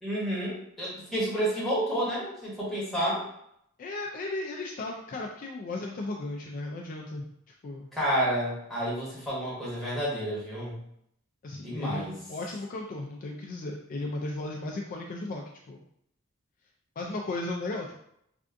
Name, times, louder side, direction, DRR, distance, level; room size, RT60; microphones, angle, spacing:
voice 1, 0.0-3.2 7.9-10.8 11.6-12.2, right 1 dB, ahead, -9 dB, 1.3 m, -30 dB
voice 2, 3.8-7.3 7.6-7.9 11.4-15.8 17.0-17.9, left 2 dB, 40° left, 0 dB, 0.3 m, -35 dB
3.4 x 2.5 x 2.5 m, 0.72 s
head